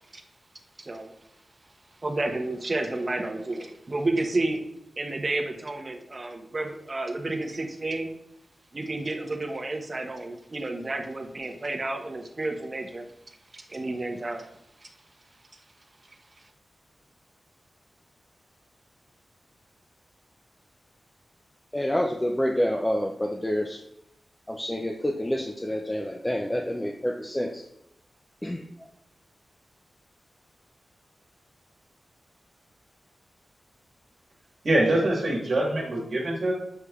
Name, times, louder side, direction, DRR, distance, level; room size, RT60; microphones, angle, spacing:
voice 1, 0.8-1.1 2.0-4.6 5.0-8.1 8.7-13.1 13.5-14.5 14.8-14.9, right 2 dB, 35° right, 4 dB, 0.6 m, -31 dB
voice 2, 21.7-23.8 24.5-27.7 28.4-28.9, equal, 10° left, 2 dB, 0.3 m, -28 dB
voice 3, 34.6-36.5, right 1 dB, 60° right, -2 dB, 1.3 m, -24 dB
6.5 x 3.2 x 2.3 m, 0.80 s
wide cardioid pair, 85°, 0 cm